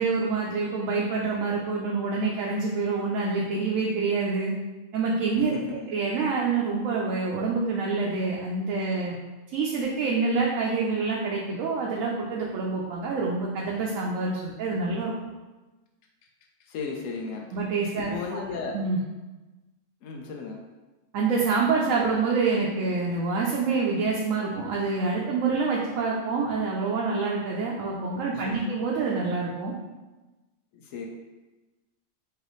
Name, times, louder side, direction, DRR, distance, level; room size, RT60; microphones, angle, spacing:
voice 1, 0.0-4.5 4.9-5.6 5.9-9.1 9.5-15.1 17.5-18.4 18.7-19.0 21.1-29.7, right 4 dB, 85° right, -3 dB, 1.0 m, -26 dB
voice 2, 5.4-5.9 16.6-17.5 18.0-18.8 20.0-20.6 28.3-28.7 30.7-31.1, left 4 dB, 90° left, 1 dB, 1.0 m, -35 dB
4.8 x 2.6 x 3.0 m, 1.2 s
omnidirectional pair, 1.3 m